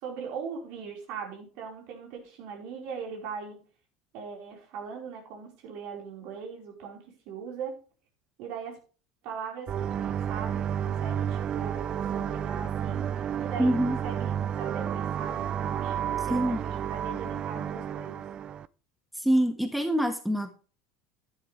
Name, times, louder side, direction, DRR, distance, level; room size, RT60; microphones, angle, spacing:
voice 1, 0.0-3.6 4.1-7.8 8.4-8.8 9.2-13.1 13.4-18.2, right 6 dB, 60° right, 0 dB, 4.8 m, -40 dB
sound 1, 9.7-18.7, right 9 dB, 40° right, 0.5 m, -31 dB
voice 2, 13.6-14.0 16.3-16.6 19.2-20.5, right 1 dB, ahead, 6 dB, 1.7 m, -25 dB
11.5 x 10.5 x 3.4 m, 0.36 s
hypercardioid pair, 85°, 2 cm